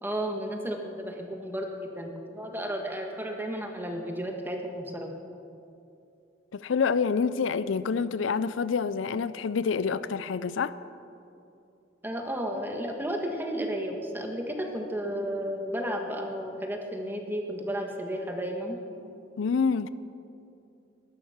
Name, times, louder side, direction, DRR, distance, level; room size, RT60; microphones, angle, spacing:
voice 1, 0.0-5.1 12.0-18.8, equal, 10° right, 2 dB, 1.6 m, -33 dB
voice 2, 6.5-10.8 19.4-19.9, left 5 dB, 85° left, 15 dB, 0.5 m, -27 dB
20.0 x 11.0 x 5.7 m, 2.7 s
head